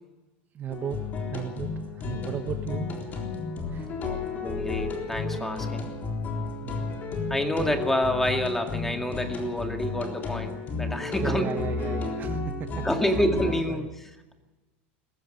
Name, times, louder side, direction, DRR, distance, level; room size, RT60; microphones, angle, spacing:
voice 1, 0.5-2.9 3.7-3.9 6.6-6.9 11.2-12.9 13.7-13.9, right 9 dB, 30° right, 8 dB, 1.1 m, -35 dB
sound 1, 0.7-13.6, left 4 dB, 30° left, 3.8 m, -32 dB
voice 2, 4.0-5.9 7.3-11.4 12.8-14.3, equal, 5° left, 5 dB, 2.2 m, -28 dB
20.5 x 15.0 x 9.4 m, 1.2 s
supercardioid pair, 145°, 6 cm